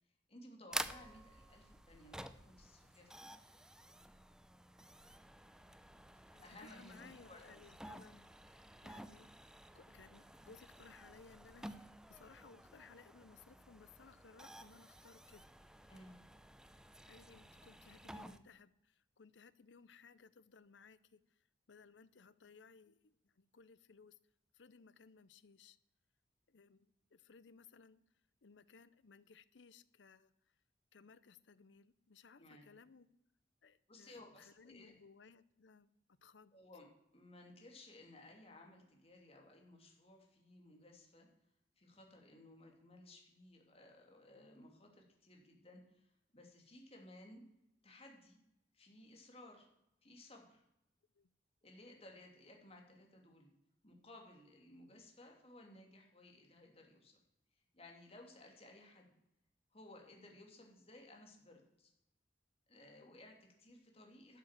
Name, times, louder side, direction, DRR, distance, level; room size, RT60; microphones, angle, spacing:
voice 1, 0.3-3.3 6.2-7.6 15.9-16.2 32.4-32.7 33.9-34.9 36.5-36.9 37.1-41.3 41.8-47.4 47.8-48.4 48.7-49.7 50.0-50.6 51.6-53.5 53.8-57.2 57.7-59.1 59.7-61.9 62.7-64.4, left 1 dB, 35° left, 1 dB, 2.7 m, -58 dB
sound 1, 0.7-18.4, right 1 dB, 5° right, 0.5 m, -51 dB
voice 2, 6.3-15.5 17.1-24.2 24.5-25.8 26.5-28.0 28.4-30.5 30.9-33.1 33.6-36.6 51.1-51.3, left 5 dB, 90° left, 17 dB, 0.7 m, -62 dB
12.0 x 7.3 x 7.4 m, 0.82 s
head